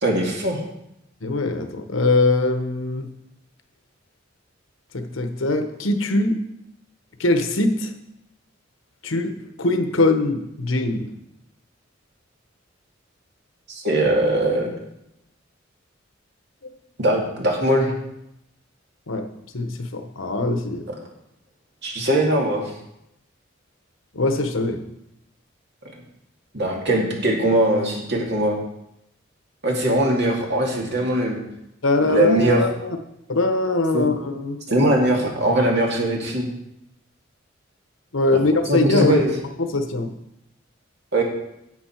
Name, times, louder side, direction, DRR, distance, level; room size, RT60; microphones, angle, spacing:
voice 1, 0.0-0.6 13.7-14.7 17.0-17.9 21.8-22.7 26.5-28.6 29.6-31.4 32.1-32.6 33.9-34.1 34.7-36.5 38.7-39.3 41.1-41.2, right 1 dB, 60° right, -1 dB, 2.4 m, -20 dB
voice 2, 1.2-3.1 4.9-6.4 7.2-7.9 9.0-9.3 9.6-11.1 16.6-16.7 19.1-19.3 19.5-20.8 24.1-24.8 31.8-33.0 33.3-34.6 38.1-39.2 39.7-40.1, left 2 dB, 85° left, 7 dB, 1.1 m, -22 dB
10.5 x 7.6 x 4.5 m, 0.83 s
head